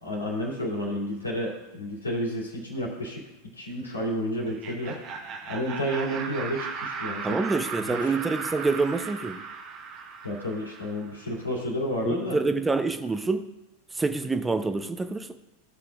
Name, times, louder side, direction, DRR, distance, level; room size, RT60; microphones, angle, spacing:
voice 1, 0.0-3.2 3.5-5.0 5.5-7.4 7.8-8.1 10.2-12.4, equal, 85° left, -3 dB, 2.5 m, -31 dB
Laughter, 4.4-11.2, right 5 dB, 40° right, 1.1 m, -37 dB
voice 2, 7.2-9.4 12.1-13.5 13.9-15.3, right 3 dB, 10° right, 8 dB, 0.6 m, -27 dB
16.5 x 6.0 x 2.4 m, 1.0 s
figure-of-eight pair, 85°, 0 cm